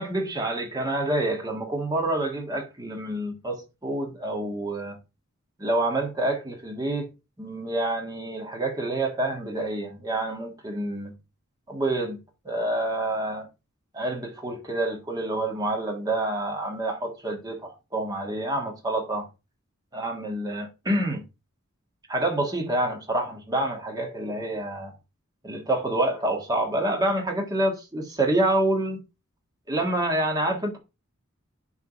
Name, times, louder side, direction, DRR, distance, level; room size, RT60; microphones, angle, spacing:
voice 1, 0.0-5.0 5.6-7.1 7.4-11.1 11.7-12.2 12.4-13.5 13.9-19.3 19.9-21.2 22.1-24.9 25.4-29.0 29.7-30.8, right 1 dB, 20° right, 1.7 m, -27 dB
10.5 x 3.6 x 5.9 m
head